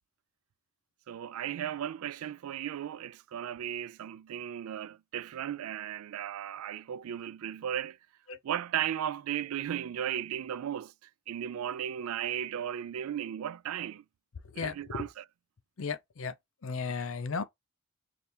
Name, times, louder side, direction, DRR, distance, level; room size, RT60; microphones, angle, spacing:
voice 1, 1.1-8.0 8.4-14.0 14.5-15.3, right 10 dB, 80° right, 0.3 m, -36 dB
voice 2, 14.5-15.0 15.8-16.3 16.6-17.4, left 5 dB, 70° left, 0.6 m, -35 dB
3.4 x 2.5 x 4.2 m
head